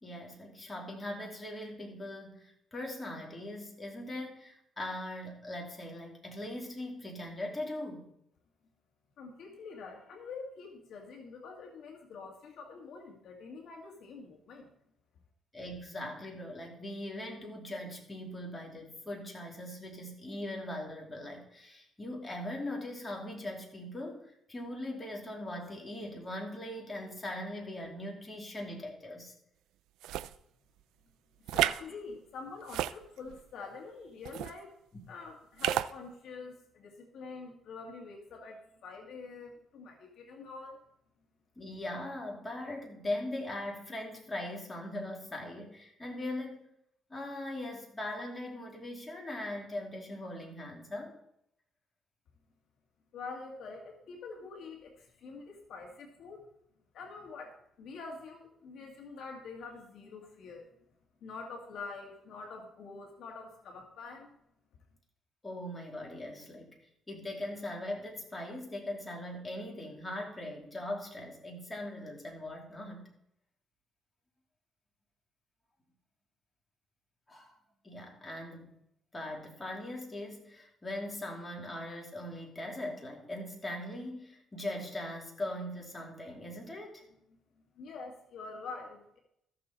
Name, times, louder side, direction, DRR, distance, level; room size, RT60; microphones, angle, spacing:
voice 1, 0.0-8.1 15.5-29.3 41.6-46.7 47.1-51.2 65.4-66.8 67.1-73.1 77.3-77.5 77.8-78.7 79.1-87.0, left 1 dB, 20° left, 0 dB, 2.8 m, -40 dB
voice 2, 9.2-14.7 31.5-34.7 35.1-40.8 53.1-56.5 56.9-60.7 61.2-64.3 87.8-89.2, left 4 dB, 75° left, 1 dB, 2.0 m, -46 dB
sound 1, 30.0-30.4 31.5-31.8 32.6-33.4 34.3-34.5 35.6-35.9, right 13 dB, 90° right, 0.3 m, -31 dB
14.0 x 6.8 x 4.1 m, 0.76 s
cardioid pair, 90°, 0 cm